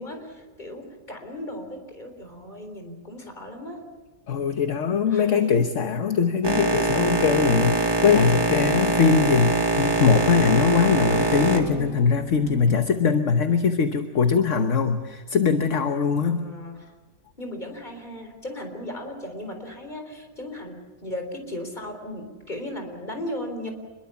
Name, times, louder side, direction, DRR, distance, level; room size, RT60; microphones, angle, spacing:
voice 1, 0.0-3.8 5.1-5.6 16.3-16.9 17.4-23.7, left 1 dB, 30° left, 4 dB, 4.2 m, -36 dB
voice 2, 4.3-16.4, left 6 dB, 60° left, 7 dB, 1.4 m, -21 dB
Boat Water vehicle, 6.4-12.8, right 2 dB, 20° right, 1.3 m, -24 dB
26.5 x 22.0 x 7.1 m, 1.3 s
omnidirectional pair, 1.5 m